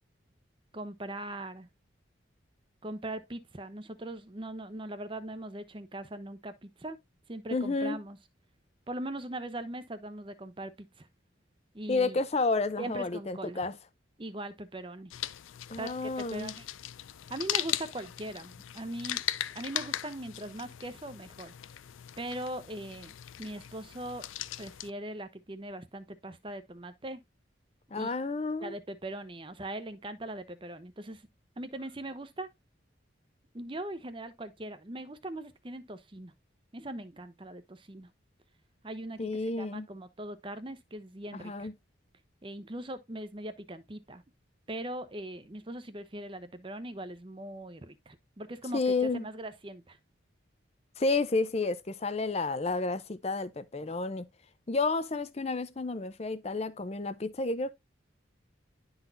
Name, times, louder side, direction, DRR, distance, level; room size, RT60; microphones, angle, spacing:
voice 1, 0.7-1.7 2.8-7.0 7.3-8.2 8.9-11.1 11.7-12.2 12.8-13.6 14.2-15.1 15.7-16.7 17.3-19.2 19.5-21.5 22.2-24.3 24.6-27.2 28.0-28.1 28.6-31.2 31.6-32.5 33.5-36.3 36.7-38.1 38.8-39.3 39.6-41.7 42.4-44.2 44.7-50.0, right 1 dB, 25° right, 0.7 m, -40 dB
voice 2, 7.5-8.0 11.9-13.8 15.7-16.5 27.9-28.7 39.2-39.9 41.3-41.7 48.7-49.3 51.0-54.3 54.7-57.7, left 3 dB, 30° left, 0.5 m, -31 dB
sound 1, 15.1-24.9, left 13 dB, 80° left, 0.4 m, -39 dB
11.0 x 4.0 x 2.6 m
head